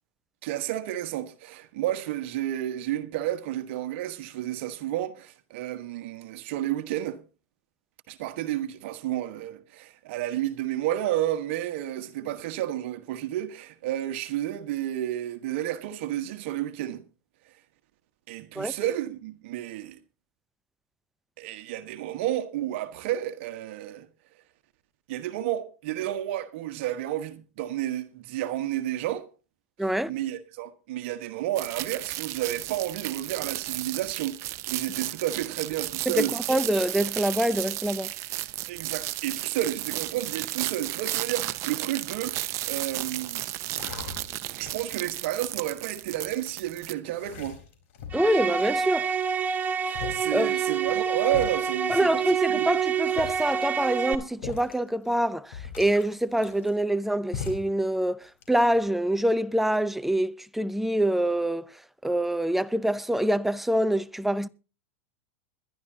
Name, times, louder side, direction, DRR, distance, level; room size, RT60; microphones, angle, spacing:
voice 1, 0.4-7.2 8.1-17.0 18.3-20.0 21.4-24.1 25.1-29.2 29.8-36.3 38.7-43.5 44.6-47.6 49.8-52.7, right 13 dB, 65° right, 1.3 m, -31 dB
voice 2, 29.8-30.1 36.1-38.1 48.1-49.1 50.3-50.5 51.9-61.7 62.0-64.5, right 1 dB, 5° right, 0.6 m, -25 dB
sound 1, 31.6-46.9, right 16 dB, 45° right, 0.8 m, -34 dB
sound 2, 42.3-42.7 43.2-43.3 43.8-45.0 45.6-46.4 47.0-48.3 48.7-49.2 49.7-49.8 49.9-50.3 50.9-51.0 51.3-51.5 52.4-52.5 53.0-53.6 54.4-54.7 55.1-55.2 55.5-57.0 57.3-57.8 58.2-58.8, left 7 dB, 70° left, 4.2 m, -39 dB
sound 3, 48.1-54.2, right 7 dB, 20° right, 1.4 m, -27 dB
21.5 x 11.5 x 2.8 m
hypercardioid pair, 110°, 7 cm